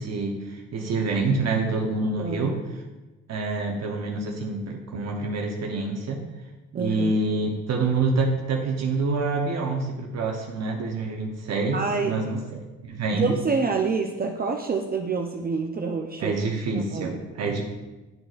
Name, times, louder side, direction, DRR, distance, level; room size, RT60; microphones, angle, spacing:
voice 1, 0.0-2.6 3.3-6.2 6.7-13.3 16.2-17.6, right 3 dB, 60° right, 1 dB, 0.8 m, -27 dB
voice 2, 2.0-2.5 6.7-7.1 11.7-12.2 13.1-16.4 16.7-17.2, right 4 dB, 30° right, 2 dB, 0.5 m, -27 dB
10.5 x 3.9 x 2.4 m, 1.1 s
cardioid pair, 90°, 30 cm